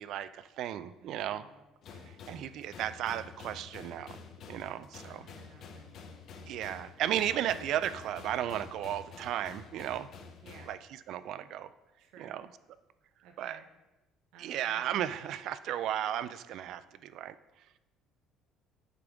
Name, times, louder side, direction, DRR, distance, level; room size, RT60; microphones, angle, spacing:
voice 1, 0.0-1.5 2.1-4.2 4.5-5.3 6.5-10.1 10.7-11.7 12.2-12.5 13.4-13.6 14.4-17.3, right 11 dB, 55° right, 14 dB, 0.3 m, -35 dB
voice 2, 1.0-1.6 5.0-5.9 10.4-10.7 12.0-12.4 13.2-13.7 14.3-15.0, right 6 dB, 70° right, 3 dB, 0.8 m, -56 dB
sound 1, 1.8-10.7, left 5 dB, 45° left, 0.7 m, -49 dB
8.2 x 5.2 x 3.5 m, 1.0 s
cardioid pair, 155°, 0 cm